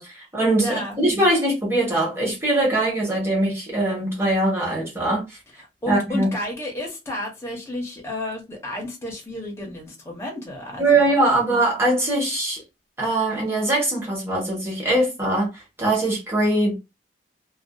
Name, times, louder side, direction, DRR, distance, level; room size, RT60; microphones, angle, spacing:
voice 1, 0.0-5.2 5.9-6.3 10.8-12.6 13.0-16.8, right 2 dB, 15° right, 0.9 m, -22 dB
voice 2, 0.6-1.0 5.5-11.6, left 1 dB, 15° left, 0.7 m, -32 dB
2.5 x 2.2 x 2.2 m
head